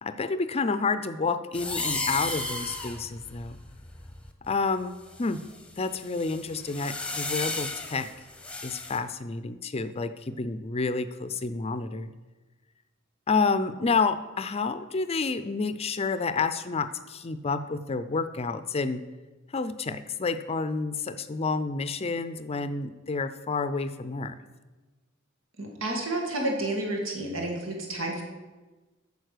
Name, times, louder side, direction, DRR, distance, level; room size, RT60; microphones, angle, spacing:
voice 1, 0.0-3.6 4.5-5.4 5.8-8.1 8.6-12.1 13.3-19.0 19.5-24.4, left 4 dB, 30° left, 12 dB, 0.5 m, -29 dB
sound 1, 1.5-4.5 5.1-9.0, left 3 dB, 5° left, 0.9 m, -34 dB
voice 2, 25.6-28.2, right 1 dB, 85° right, 1 dB, 2.2 m, -30 dB
9.1 x 6.8 x 6.6 m, 1.2 s
head